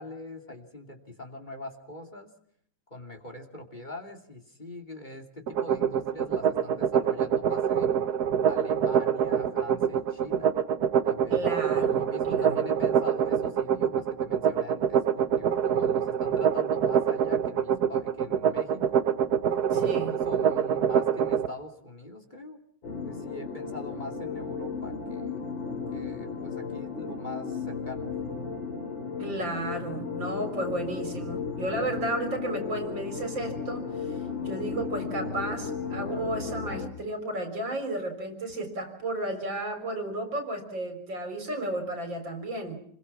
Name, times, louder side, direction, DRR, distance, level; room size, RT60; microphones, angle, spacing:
voice 1, 0.0-2.3 2.9-8.0 8.5-10.5 11.0-11.5 11.8-19.1 19.7-22.6 23.0-25.4 25.9-28.1, left 2 dB, 25° left, 5 dB, 3.0 m, -43 dB
sound 1, 5.5-21.5, right 8 dB, 60° right, 1.6 m, -25 dB
voice 2, 11.3-12.6 19.7-20.2 29.2-42.8, right 1 dB, 75° right, 7 dB, 4.7 m, -33 dB
sound 2, 22.8-36.9, left 5 dB, 80° left, 4.5 m, -35 dB
29.0 x 21.5 x 6.0 m, 0.66 s
omnidirectional pair, 2.0 m